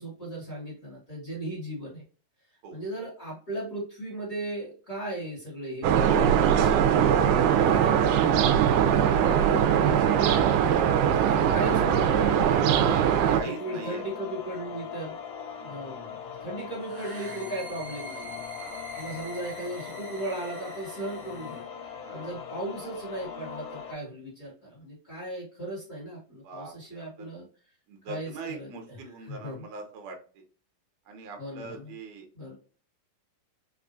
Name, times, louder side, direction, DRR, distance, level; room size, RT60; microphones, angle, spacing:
voice 1, 0.0-2.0 2.7-6.9 7.2-8.2 8.5-10.5 11.1-15.2 15.6-18.4 19.0-27.4 28.0-29.6 31.4-32.0 32.3-32.5, right 1 dB, 35° left, -7 dB, 1.6 m, -37 dB
sound 1, 5.8-13.4, right 9 dB, 85° right, 2.0 m, -21 dB
sound 2, 11.3-23.9, left 8 dB, 85° left, 2.1 m, -40 dB
voice 2, 12.9-14.1 15.6-15.8 18.6-18.8 22.0-22.3 26.4-27.3 27.9-30.4 31.1-32.3, right 4 dB, 70° right, 3 dB, 2.0 m, -42 dB
sound 3, 16.8-21.6, right 3 dB, 25° right, 1.1 m, -45 dB
5.4 x 2.3 x 2.5 m, 0.39 s
omnidirectional pair, 3.5 m